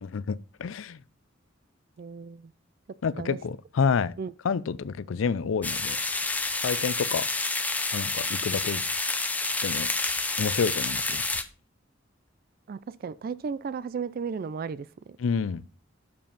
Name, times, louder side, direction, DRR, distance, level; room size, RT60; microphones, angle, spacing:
voice 1, 0.0-1.0 3.0-4.1 4.4-6.0 6.6-7.3 7.9-8.8 9.6-9.9 10.4-11.2 15.2-15.7, left 5 dB, 80° left, 0.4 m, -28 dB
voice 2, 2.0-2.5 3.2-3.4 4.2-4.3 12.7-15.2, right 5 dB, 50° right, 0.3 m, -35 dB
sound 1, 5.6-11.4, left 3 dB, 10° left, 0.5 m, -29 dB
7.0 x 5.2 x 5.6 m
head